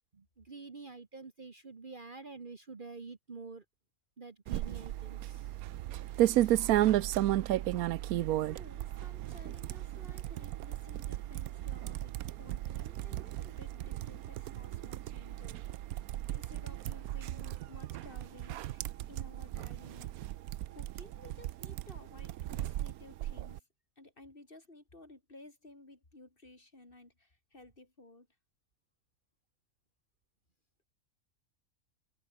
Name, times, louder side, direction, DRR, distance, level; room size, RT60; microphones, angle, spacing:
voice 1, 0.1-3.6 4.2-5.6 6.2-6.6, right 4 dB, 35° right, 1.5 m, -48 dB
sound 1, 4.5-23.6, right 14 dB, 85° right, 1.1 m, -34 dB
voice 2, 8.0-16.0 16.3-20.3 20.8-23.6 24.0-28.3, left 2 dB, 40° left, 3.7 m, -55 dB
omnidirectional pair, 1.5 m